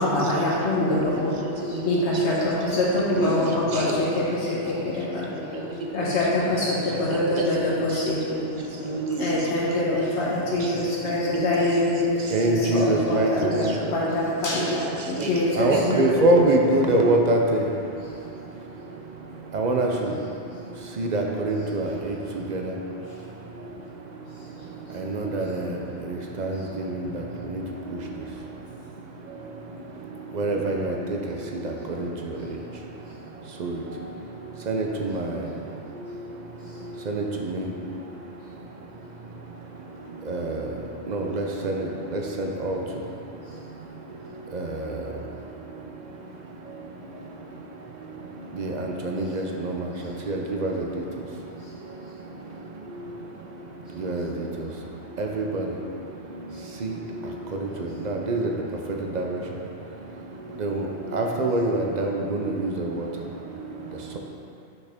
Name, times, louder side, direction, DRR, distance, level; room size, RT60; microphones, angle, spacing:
voice 1, 0.0-1.3 1.8-2.8 3.2-5.2 5.9-8.2 9.2-12.0 12.5-16.1 16.8-17.0 36.7-36.8, left 2 dB, 70° left, -6 dB, 1.2 m, -25 dB
voice 2, 0.7-1.9 2.7-4.3 4.7-6.1 6.5-7.9 8.2-10.2 10.7-12.5 12.8-13.4 14.0-14.8 15.1-15.3, left 2 dB, 25° left, -10 dB, 1.7 m, -40 dB
voice 3, 12.3-13.6 15.2-15.3 15.6-17.6 19.5-19.9 21.0-21.9 22.5-22.6 25.1-25.4 26.4-26.6 30.4-30.9 34.7-35.2 37.1-37.2 40.3-40.4 41.1-41.7 42.1-42.8 48.6-48.7 49.1-49.4 50.3-50.7 54.0-54.2 55.2-55.6 58.1-58.5 59.2-59.3 60.6-60.8 61.1-62.7, right 2 dB, 50° right, 1 dB, 0.6 m, -23 dB
6.2 x 5.6 x 3.5 m, 2.6 s
omnidirectional pair, 1.2 m